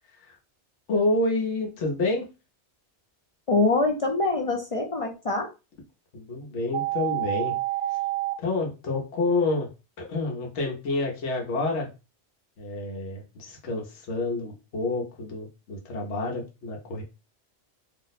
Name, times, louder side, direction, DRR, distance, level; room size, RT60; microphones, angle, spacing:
voice 1, 0.9-2.3 6.1-7.6 8.4-9.7 10.1-11.9 12.6-17.0, left 2 dB, 85° left, 0 dB, 1.1 m, -28 dB
voice 2, 3.5-5.5, left 3 dB, 45° left, 1 dB, 0.5 m, -24 dB
sound 1, 6.7-8.3, right 15 dB, 75° right, 0.9 m, -28 dB
2.7 x 2.0 x 4.0 m, 0.29 s
omnidirectional pair, 1.2 m